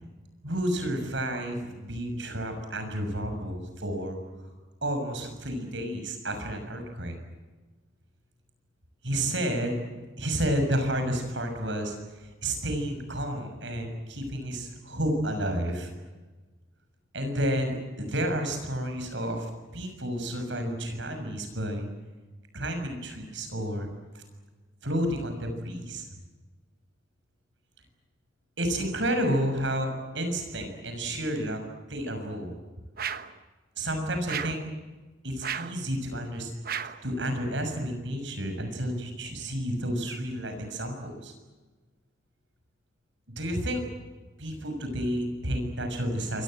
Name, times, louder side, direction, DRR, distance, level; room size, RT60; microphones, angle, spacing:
voice 1, 0.4-4.5 4.8-7.2 9.0-15.9 17.1-21.9 22.5-23.9 24.1-24.2 24.8-26.0 28.6-31.6 31.9-32.6 33.7-34.6 35.2-36.5 37.0-41.3 43.3-43.8 44.4-46.4, equal, 60° right, 6 dB, 6.7 m, -31 dB
sound 1, 33.0-33.4 34.3-34.7 35.4-35.8 36.6-37.1, right 8 dB, 45° right, 1.1 m, -34 dB
27.5 x 24.0 x 7.8 m, 1.3 s
head